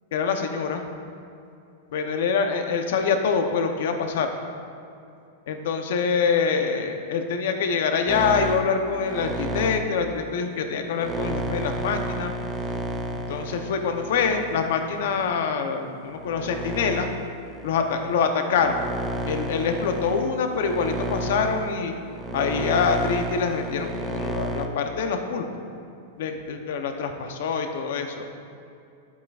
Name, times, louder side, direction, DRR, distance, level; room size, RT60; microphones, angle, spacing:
voice 1, 0.1-0.8 1.9-4.3 5.5-12.3 13.1-17.1 17.6-18.8 19.2-21.9 22.3-25.5 26.2-28.2, left 5 dB, 60° left, 5 dB, 0.8 m, -25 dB
sound 1, 8.1-15.5 16.1-24.7, right 1 dB, 10° right, 0.4 m, -32 dB
11.5 x 8.2 x 2.5 m, 2.6 s
supercardioid pair, 175°, 0 cm